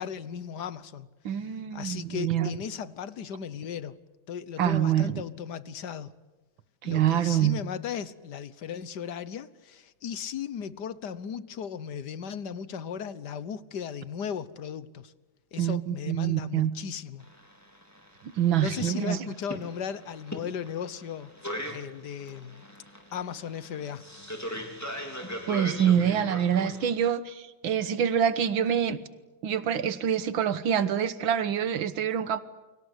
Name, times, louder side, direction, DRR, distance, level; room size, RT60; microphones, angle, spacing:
voice 1, 0.0-1.1 1.7-4.0 4.3-6.1 6.8-15.1 15.5-17.2 18.6-21.3 21.7-22.6 23.1-24.0, left 7 dB, 60° left, 1.6 m, -36 dB
voice 2, 1.3-2.5 4.6-5.2 6.8-7.6 15.6-16.7 18.2-19.3 25.5-29.0 29.4-32.4, right 9 dB, 80° right, 2.0 m, -26 dB
sound 1, 17.2-26.9, equal, 10° left, 3.6 m, -39 dB
29.5 x 24.0 x 8.1 m
omnidirectional pair, 2.1 m